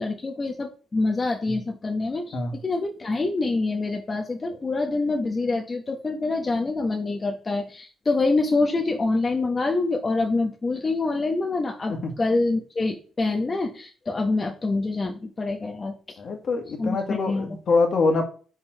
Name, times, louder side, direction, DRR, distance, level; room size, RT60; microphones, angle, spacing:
voice 1, 0.0-16.2 16.7-17.6, left 3 dB, 30° left, 2 dB, 1.0 m, -26 dB
voice 2, 16.2-18.2, left 3 dB, 55° left, 3 dB, 1.7 m, -24 dB
5.4 x 4.5 x 4.5 m, 0.39 s
cardioid pair, 90°, 0 cm